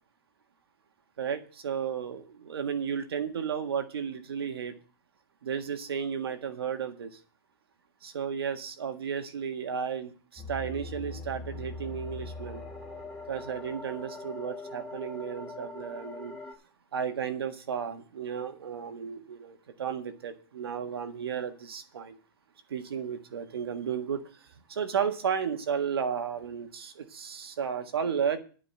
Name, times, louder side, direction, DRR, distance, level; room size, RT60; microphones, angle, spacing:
voice 1, 1.2-4.7 5.4-7.2 8.0-12.6 13.3-16.3 16.9-22.2 22.7-24.2 24.7-28.4, right 7 dB, 90° right, 8 dB, 1.6 m, -33 dB
sound 1, 10.4-16.5, left 3 dB, ahead, 3.6 m, -41 dB
12.5 x 5.1 x 7.9 m, 0.39 s
hypercardioid pair, 135°, 12 cm